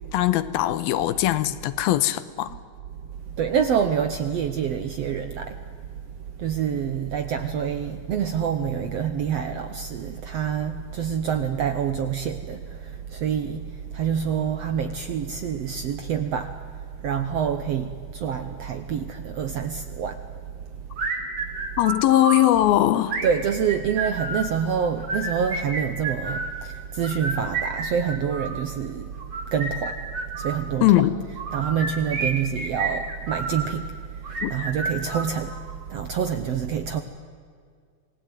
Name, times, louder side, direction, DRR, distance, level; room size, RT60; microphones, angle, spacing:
voice 1, 0.1-2.6 21.8-23.2 30.8-31.2 34.4-34.5, left 14 dB, 85° left, 2.8 m, -20 dB
voice 2, 3.3-5.6 6.4-16.5 17.0-20.2 23.2-29.1 29.5-30.0 30.3-30.8 31.5-35.6 35.9-37.0, right 7 dB, 70° right, 1.6 m, -27 dB
sound 1, 21.0-22.5 23.1-24.5 25.0-26.5 27.0-28.6 29.2-30.6 31.3-33.7 34.2-35.7, right 3 dB, 50° right, 4.9 m, -30 dB
26.5 x 19.5 x 9.4 m
omnidirectional pair, 4.2 m